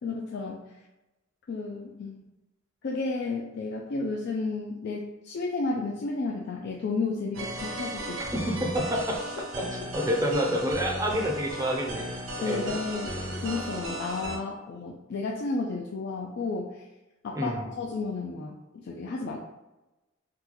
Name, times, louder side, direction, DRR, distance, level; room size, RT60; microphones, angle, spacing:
voice 1, 0.0-0.6 1.5-2.3 2.8-8.2 12.4-13.1 13.4-16.8 17.2-19.4, left 3 dB, 60° left, -1 dB, 0.4 m, -32 dB
sound 1, 7.3-14.4, right 1 dB, 70° right, 0.6 m, -36 dB
voice 2, 8.3-9.2 9.6-12.1 12.4-12.7 17.3-17.6, equal, 15° right, 0 dB, 0.5 m, -28 dB
3.8 x 2.2 x 2.9 m, 1.0 s
head